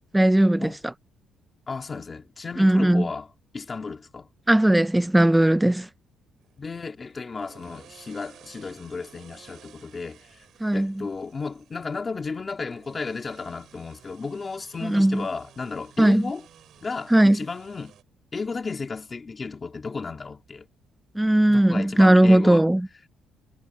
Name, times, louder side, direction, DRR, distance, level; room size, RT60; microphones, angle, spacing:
voice 1, 0.1-0.9 2.6-3.1 4.5-5.9 10.6-11.1 14.8-15.3 16.0-16.3 17.1-17.4 21.1-22.9, right 1 dB, 5° right, 0.6 m, -18 dB
voice 2, 1.7-3.3 3.5-4.3 6.6-10.5 10.7-16.4 16.8-17.9 18.3-20.7 21.5-22.7, left 4 dB, 25° left, 2.1 m, -34 dB
sound 1, 6.4-18.0, right 10 dB, 60° right, 8.0 m, -54 dB
cardioid pair, 160°, 0 cm